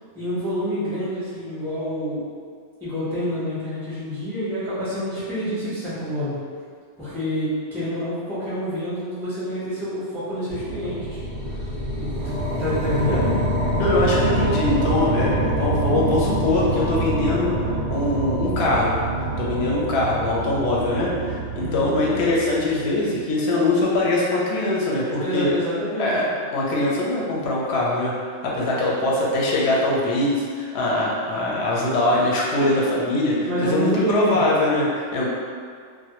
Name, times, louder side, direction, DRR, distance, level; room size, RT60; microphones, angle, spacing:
voice 1, 0.1-2.2 2.8-6.4 7.0-11.2 12.0-13.4 21.5-22.0 25.2-26.2 33.4-34.4, equal, 5° left, -11 dB, 0.5 m, -27 dB
sound 1, 10.5-23.0, right 1 dB, 60° right, 0.6 m, -26 dB
voice 2, 13.8-19.0 19.4-25.5 26.0-26.2 26.5-28.2 28.4-35.3, left 2 dB, 70° left, -4 dB, 0.8 m, -22 dB
2.1 x 2.1 x 2.8 m, 2.1 s
omnidirectional pair, 1.2 m